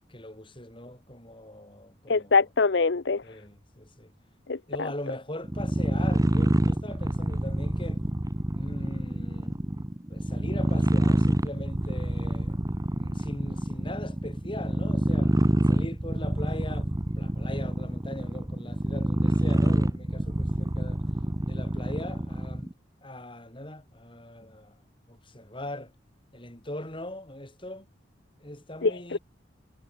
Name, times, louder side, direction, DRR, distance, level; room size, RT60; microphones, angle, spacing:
voice 1, 0.1-2.4 3.2-4.1 4.7-8.0 8.5-9.7 10.1-12.6 12.9-15.4 15.7-21.0 21.4-22.7 23.0-24.8 25.1-25.9 26.3-27.9 28.4-29.2, left 1 dB, 25° left, 6.3 m, -40 dB
voice 2, 2.1-3.2 4.5-4.6 28.8-29.2, left 4 dB, 60° left, 0.7 m, -23 dB
sound 1, 5.4-22.7, right 1 dB, 20° right, 0.9 m, -27 dB
head